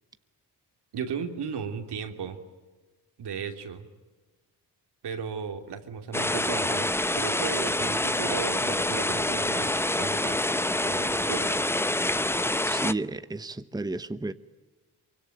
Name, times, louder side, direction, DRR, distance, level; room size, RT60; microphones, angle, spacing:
voice 1, 0.9-2.4 3.2-3.9 5.0-10.5 10.8-11.7, right 6 dB, 75° right, 5 dB, 3.0 m, -36 dB
sound 1, 6.1-12.9, left 1 dB, 5° left, 0.7 m, -26 dB
voice 2, 12.6-14.3, right 2 dB, 10° right, 12 dB, 1.0 m, -32 dB
24.0 x 24.0 x 9.1 m, 1.2 s
cardioid pair, 75°, 40 cm